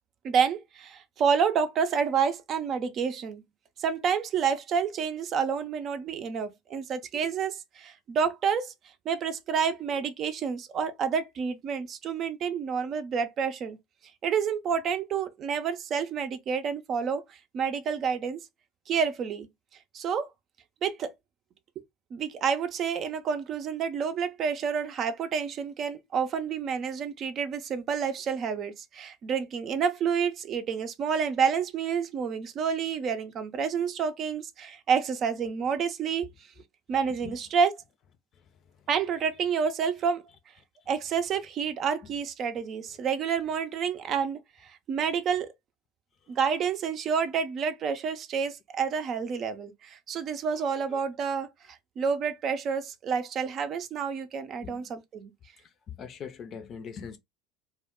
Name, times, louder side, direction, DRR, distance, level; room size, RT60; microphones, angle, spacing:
voice 1, 0.2-3.4 3.8-8.7 9.1-13.8 14.2-17.2 17.5-18.4 18.9-19.5 19.9-20.3 20.8-21.1 22.1-36.3 36.9-37.7 38.9-40.2 40.9-45.5 46.3-51.5 52.0-55.3, right 6 dB, 45° right, 0.5 m, -29 dB
voice 2, 36.9-37.4 38.3-38.9 40.8-40.9 42.8-43.0 46.2-46.4 50.5-51.0 54.6-54.9 55.6-57.2, left 7 dB, 45° left, 0.5 m, -44 dB
2.2 x 2.2 x 3.5 m
hypercardioid pair, 80°, 0 cm